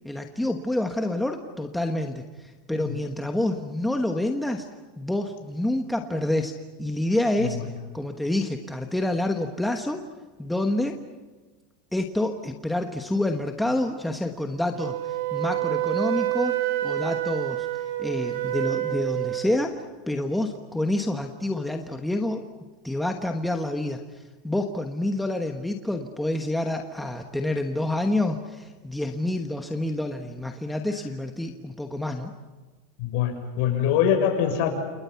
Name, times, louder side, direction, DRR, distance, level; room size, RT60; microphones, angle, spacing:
voice 1, 0.0-4.7 5.0-7.6 7.9-10.1 10.4-11.0 11.9-17.7 18.0-22.4 22.8-32.3, left 1 dB, ahead, 4 dB, 1.2 m, -28 dB
Wind instrument woodwind instrument, 14.8-19.5, right 15 dB, 70° right, 2.4 m, -27 dB
voice 2, 33.0-34.7, left 9 dB, 50° left, 4 dB, 7.0 m, -24 dB
29.5 x 29.0 x 5.8 m, 1.3 s
supercardioid pair, 180°, 0 cm